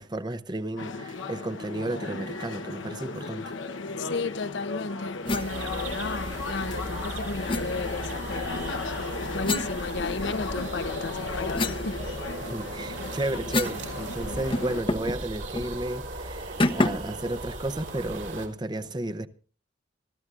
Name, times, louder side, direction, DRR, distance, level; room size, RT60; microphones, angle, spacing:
voice 1, 0.0-3.5 12.4-19.3, right 1 dB, 25° right, 0.7 m, -33 dB
sound 1, 0.8-14.8, left 3 dB, 80° left, 1.0 m, -35 dB
voice 2, 4.0-8.8 9.3-12.0, left 3 dB, 60° left, 0.7 m, -34 dB
sound 2, 5.2-5.5 7.5-7.7 9.4-10.5 10.9-13.8 14.1-14.2 14.5-15.2 15.5-15.7 16.6-17.1, left 2 dB, 25° left, 0.8 m, -29 dB
sound 3, 5.3-18.5, right 2 dB, 65° right, 3.1 m, -37 dB
25.5 x 13.5 x 2.5 m
head